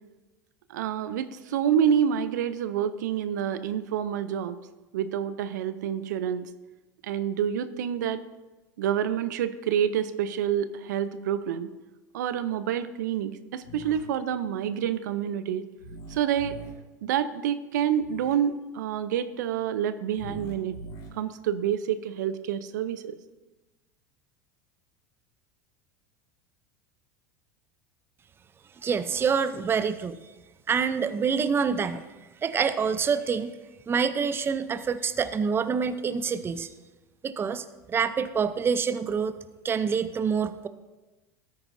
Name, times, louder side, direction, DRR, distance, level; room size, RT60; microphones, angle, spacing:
voice 1, 0.7-4.6 4.9-6.5 7.0-8.2 8.8-11.7 12.1-15.6 16.1-16.6 17.0-20.8 21.1-23.2, right 9 dB, 80° right, 12 dB, 0.5 m, -28 dB
sound 1, 13.6-14.0 15.8-16.7 18.0-18.3 20.1-21.1, right 1 dB, 60° left, 3.6 m, -42 dB
voice 2, 28.8-30.2 30.7-32.0 32.4-33.5 33.9-36.7 37.2-39.3 39.6-40.7, right 6 dB, 25° right, 12 dB, 0.5 m, -26 dB
13.0 x 9.4 x 2.6 m, 1.1 s
hypercardioid pair, 95°, 10 cm